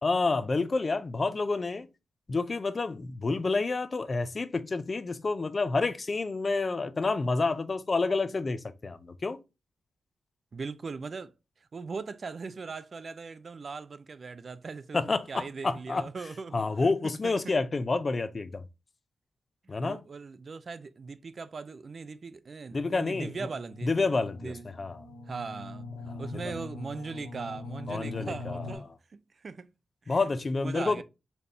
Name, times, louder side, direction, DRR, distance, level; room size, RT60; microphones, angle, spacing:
voice 1, 0.0-1.9 2.3-9.4 14.9-16.0 16.5-18.6 19.7-20.0 22.7-23.3 23.8-25.0 26.1-26.2 27.9-28.6 30.1-31.0, left 3 dB, 35° left, 0.5 m, -29 dB
voice 2, 10.5-11.3 11.7-17.5 19.6-23.9 24.4-24.6 25.2-25.9 26.2-29.7 30.0-30.2 30.6-31.0, right 4 dB, 50° right, 0.4 m, -40 dB
sound 1, 23.3-28.7, left 3 dB, 80° left, 0.9 m, -42 dB
4.2 x 3.4 x 2.7 m
wide cardioid pair, 105°, 0 cm